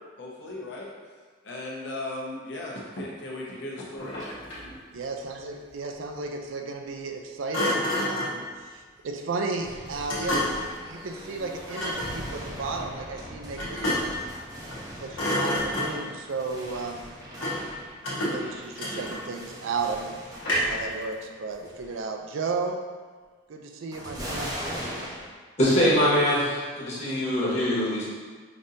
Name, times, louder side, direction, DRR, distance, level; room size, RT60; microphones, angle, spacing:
voice 1, 0.2-0.9 1.4-4.1, left 1 dB, 60° left, -4 dB, 0.8 m, -36 dB
Thump thud, 3.9-4.8 7.5-8.4 10.1-10.7 11.7-12.2 13.6-14.2 14.6-14.9 15.1-16.1 17.4-17.7 18.0-19.4 20.4-20.9, left 1 dB, 80° left, 1.2 m, -29 dB
voice 2, 4.9-10.6 10.8-14.2 15.0-17.1 18.1-22.8 23.5-24.6, right 4 dB, 75° right, 3 dB, 0.4 m, -34 dB
sound 1, 9.6-21.2 21.5-22.0 23.9-25.3, equal, 20° right, 0.5 m, -40 dB
voice 3, 25.6-28.0, equal, 35° left, -8 dB, 1.1 m, -23 dB
5.1 x 2.7 x 2.6 m, 1.5 s
head